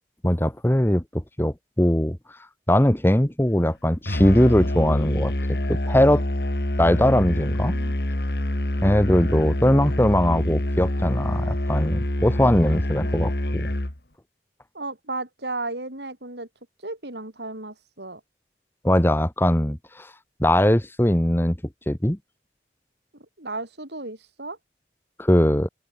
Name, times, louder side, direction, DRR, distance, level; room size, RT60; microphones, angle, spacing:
voice 1, 0.2-2.2 2.7-5.3 5.7-6.2 6.8-7.7 8.8-13.7 18.8-20.1 20.4-21.6 21.9-22.2 25.2-25.7, left 1 dB, 10° left, 1.3 m, -20 dB
Musical instrument, 4.1-14.0, left 1 dB, 60° left, 2.8 m, -26 dB
voice 2, 14.7-16.5 16.8-18.2 23.1-24.6, right 2 dB, 75° right, 7.3 m, -34 dB
open air
head